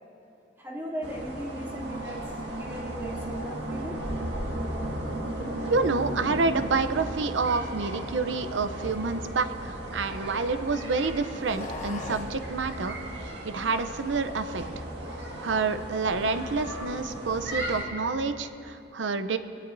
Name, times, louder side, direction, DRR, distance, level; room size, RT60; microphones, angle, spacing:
voice 1, 0.6-2.2 2.6-4.0, right 1 dB, 15° right, -5 dB, 2.9 m, -37 dB
sound 1, 1.0-17.8, right 1 dB, 65° right, 1.8 m, -35 dB
sound 2, 4.1-13.5, equal, 50° right, 1.8 m, -47 dB
voice 2, 5.7-13.0 13.4-14.8 15.4-19.4, right 4 dB, 80° right, 10 dB, 0.7 m, -28 dB
sound 3, 9.2-10.6 11.3-12.4, left 2 dB, 40° left, 1.1 m, -41 dB
22.0 x 17.5 x 2.7 m, 2.8 s
head